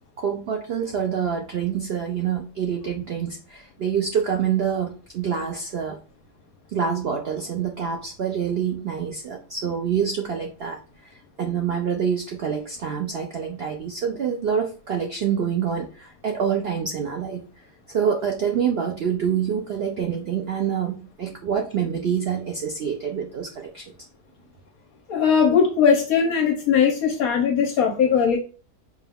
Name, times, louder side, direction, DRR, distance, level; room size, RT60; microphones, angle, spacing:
voice 1, 0.2-6.0 6.7-10.8 11.4-17.4 17.9-23.8, right 7 dB, 90° right, 2 dB, 0.5 m, -26 dB
voice 2, 25.1-28.4, left 7 dB, 70° left, 3 dB, 1.0 m, -19 dB
4.7 x 2.3 x 3.4 m, 0.37 s
omnidirectional pair, 1.7 m